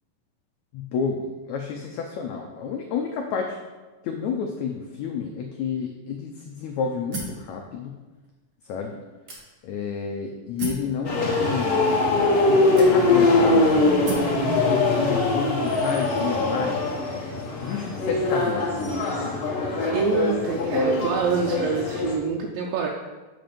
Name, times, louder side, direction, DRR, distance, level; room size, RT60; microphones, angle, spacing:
voice 1, 0.7-3.6 4.0-8.0 8.6-9.0 9.6-12.1 12.4-16.9 17.6-19.5, left 6 dB, 90° left, 2 dB, 1.6 m, -30 dB
sound 1, 7.1-7.5 8.2-8.3 9.3-9.8 10.6-10.9 11.9-12.0 12.8-13.3 14.0-14.4, right 3 dB, 55° right, 1.4 m, -34 dB
sound 2, 11.0-22.2, left 2 dB, 50° left, 1.7 m, -22 dB
voice 2, 19.9-22.9, right 5 dB, 85° right, 0 dB, 2.4 m, -26 dB
7.7 x 5.0 x 5.1 m, 1.2 s
omnidirectional pair, 4.0 m